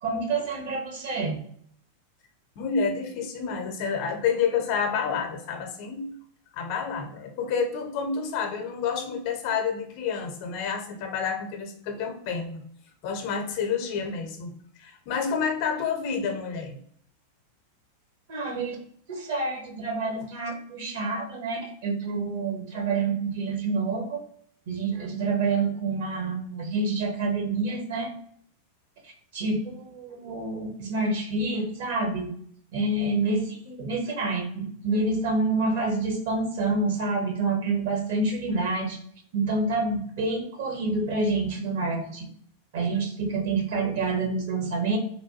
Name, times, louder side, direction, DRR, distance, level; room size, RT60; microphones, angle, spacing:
voice 1, 0.0-1.4 18.3-18.8 19.1-24.2 24.7-28.1 29.0-32.3 32.7-39.0 39.3-42.3 42.7-45.0, right 3 dB, 55° right, 2 dB, 0.8 m, -28 dB
voice 2, 2.6-6.1 6.5-12.6 13.0-14.5 14.8-16.8, left 6 dB, 45° left, 5 dB, 0.6 m, -29 dB
3.2 x 2.2 x 2.7 m, 0.63 s
figure-of-eight pair, 90°, 0 cm